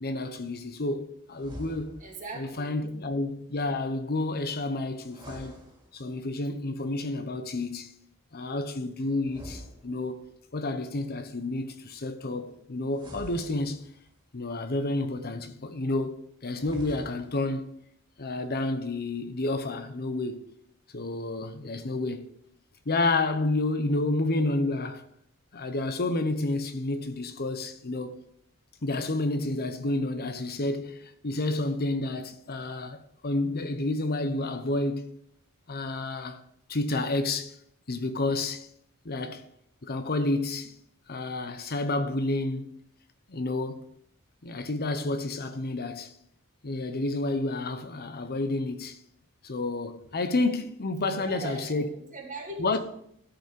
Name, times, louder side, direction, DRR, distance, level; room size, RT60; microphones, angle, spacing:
voice 1, 0.0-2.0 2.4-5.6 5.9-7.9 8.3-10.2 10.5-13.8 14.3-17.7 18.2-20.4 20.9-22.3 22.9-25.0 25.5-28.2 28.8-35.1 35.7-36.4 36.7-37.6 37.9-38.7 39.0-39.4 39.8-40.8 41.1-42.7 43.3-43.8 44.4-46.1 46.6-49.0 49.4-51.9 52.6-52.8, left 2 dB, 45° left, 0.9 m, -30 dB
sound 1, 1.3-2.3 5.0-6.3 9.2-10.4 12.9-14.2 16.5-17.5, equal, 20° right, 2.4 m, -46 dB
voice 2, 2.0-2.8 51.1-52.8, right 3 dB, 35° right, 1.8 m, -40 dB
13.0 x 5.4 x 5.3 m
head